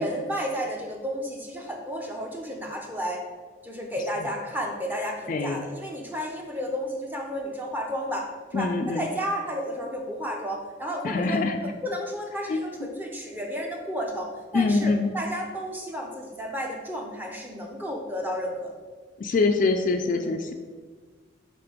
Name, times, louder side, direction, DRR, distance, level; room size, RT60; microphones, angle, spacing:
voice 1, 0.0-3.2 3.6-11.4 11.8-18.7 20.2-20.4, equal, 10° right, 1 dB, 0.7 m, -32 dB
voice 2, 5.3-5.7 8.5-9.1 11.0-11.6 12.5-12.9 14.5-15.1 19.2-20.5, left 3 dB, 45° left, 6 dB, 0.3 m, -24 dB
5.8 x 3.7 x 5.1 m, 1.5 s
head